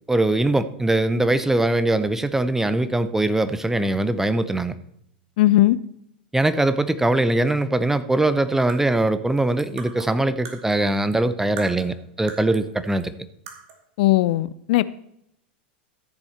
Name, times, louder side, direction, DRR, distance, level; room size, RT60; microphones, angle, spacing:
voice 1, 0.1-4.7 6.3-13.1, right 2 dB, 5° right, 13 dB, 0.7 m, -21 dB
voice 2, 5.4-5.8 14.0-14.8, left 16 dB, 60° left, 17 dB, 0.5 m, -18 dB
sound 1, 8.5-11.2 11.6-12.7 13.0-13.1 13.5-13.9, right 5 dB, 55° right, 2.3 m, -41 dB
13.5 x 7.0 x 4.4 m, 0.74 s
hypercardioid pair, 90°, 5 cm